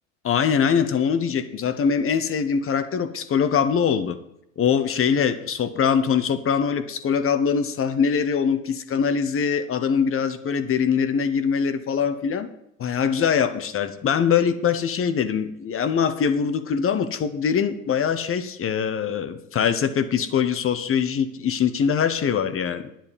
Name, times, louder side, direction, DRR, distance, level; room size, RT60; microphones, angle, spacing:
voice 1, 0.2-4.2 4.6-12.5 12.8-22.9, left 7 dB, 35° left, 11 dB, 1.1 m, -23 dB
10.5 x 10.5 x 5.3 m, 0.80 s
figure-of-eight pair, 65°, 39 cm